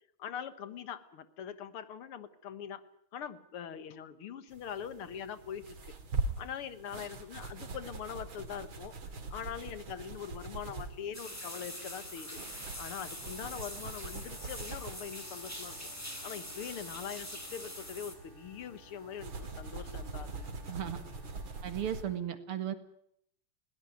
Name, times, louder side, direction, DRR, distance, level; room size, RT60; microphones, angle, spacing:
voice 1, 0.2-2.8 3.1-6.0 6.4-8.9 9.3-12.3 12.8-15.8 16.2-20.5, left 8 dB, 85° left, 13 dB, 2.3 m, -42 dB
sound 1, 4.5-22.0, right 3 dB, 70° right, 3.2 m, -43 dB
sound 2, 11.1-18.1, equal, 5° left, 3.4 m, -44 dB
sound 3, 14.3-22.2, equal, 25° left, 5.0 m, -59 dB
voice 2, 20.7-21.0 21.6-22.7, right 10 dB, 85° right, 10 dB, 2.7 m, -35 dB
21.0 x 17.5 x 9.3 m, 0.71 s
omnidirectional pair, 2.3 m